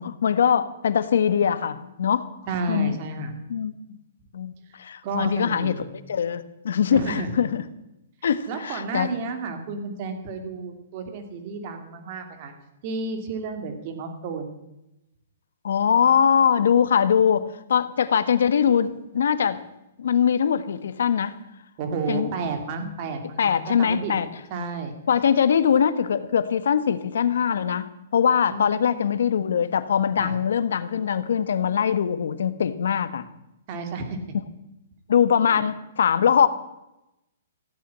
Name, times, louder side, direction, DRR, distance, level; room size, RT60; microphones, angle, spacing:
voice 1, 0.0-2.3 2.7-3.0 3.5-4.0 4.3-7.6 8.2-9.2 15.6-19.6 20.0-21.3 22.1-22.3 23.4-24.3 25.1-33.3 35.1-36.5, left 8 dB, 75° left, 13 dB, 1.3 m, -22 dB
voice 2, 2.5-3.3 5.0-5.8 6.9-7.3 8.5-12.5 12.8-14.6 21.8-24.1 24.5-24.9 28.4-29.0 30.2-30.3 33.7-34.4, right 4 dB, 30° right, 6 dB, 2.5 m, -31 dB
15.5 x 9.5 x 8.6 m, 0.91 s
hypercardioid pair, 170°, 0 cm